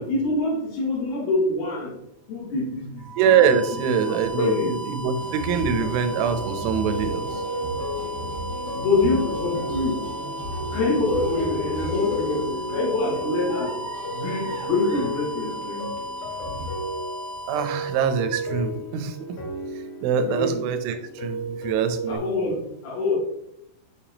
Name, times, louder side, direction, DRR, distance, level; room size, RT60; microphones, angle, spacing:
voice 1, 0.0-2.0 2.3-3.4 3.8-4.7 8.7-10.0 10.7-13.8 14.1-15.9 20.3-20.7 22.1-23.2, left 2 dB, 60° left, -3 dB, 3.6 m, -25 dB
sound 1, 3.0-18.8, right 1 dB, 40° right, 3.2 m, -36 dB
voice 2, 3.2-7.3 17.5-19.2 20.0-22.2, right 7 dB, 90° right, 8 dB, 3.3 m, -23 dB
sound 2, 5.1-16.7, equal, 70° right, 2.1 m, -36 dB
sound 3, 6.1-22.2, left 1 dB, 85° left, 4.2 m, -34 dB
7.1 x 7.0 x 2.9 m, 0.77 s
omnidirectional pair, 5.4 m